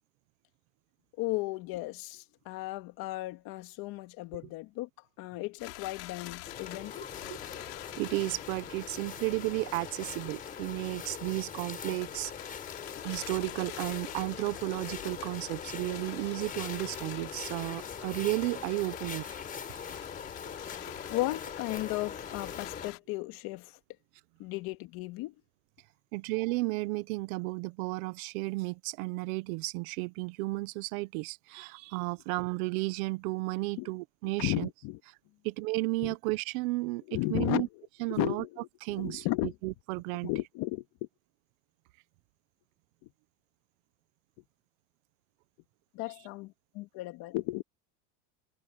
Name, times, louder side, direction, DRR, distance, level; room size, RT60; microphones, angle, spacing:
voice 1, 1.2-4.9 5.2-7.1 21.1-23.8 24.4-25.3 33.8-33.9 34.4-35.0 36.0-36.2 37.1-39.6 40.2-41.1 43.0-43.1 45.9-47.6, left 19 dB, 50° left, 2.1 m, -35 dB
sound 1, 5.6-23.0, left 22 dB, 85° left, 3.3 m, -46 dB
sound 2, 6.4-22.9, left 6 dB, 20° left, 4.7 m, -42 dB
voice 2, 8.0-12.6 13.0-19.3 19.9-20.0 26.1-34.7 35.4-37.0 37.3-37.7 38.0-38.4 38.8-40.3, right 22 dB, 65° right, 1.0 m, -33 dB
cardioid pair, 160°, 46 cm